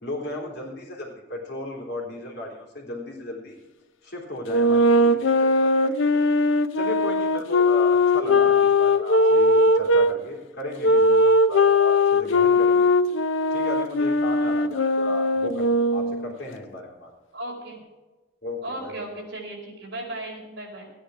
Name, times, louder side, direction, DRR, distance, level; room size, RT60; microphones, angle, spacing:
voice 1, 0.0-3.6 4.0-6.0 6.7-12.9 13.5-17.1 18.4-19.1, left 1 dB, 55° left, -1 dB, 3.7 m, -36 dB
sound 1, 4.5-10.1 10.8-16.3, left 2 dB, 85° left, 0.7 m, -20 dB
voice 2, 8.2-8.5 17.3-17.8 18.6-20.9, right 1 dB, 55° right, -1 dB, 4.6 m, -36 dB
15.0 x 9.9 x 4.8 m, 1.2 s
head